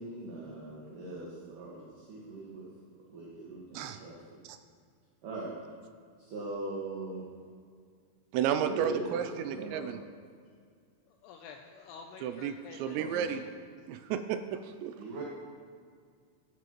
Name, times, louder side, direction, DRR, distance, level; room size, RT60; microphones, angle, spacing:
voice 1, 0.0-2.7 3.1-4.4 5.2-5.6 6.2-7.3 8.6-9.9 13.0-13.3 15.0-15.2, right 2 dB, 55° right, -5 dB, 2.6 m, -40 dB
voice 2, 8.3-10.0 12.2-13.4 13.9-14.9, right 9 dB, 85° right, 9 dB, 2.7 m, -32 dB
voice 3, 11.1-13.0 13.3-13.4, left 6 dB, 85° left, 3 dB, 2.3 m, -49 dB
14.0 x 13.0 x 3.1 m, 2.1 s
omnidirectional pair, 5.3 m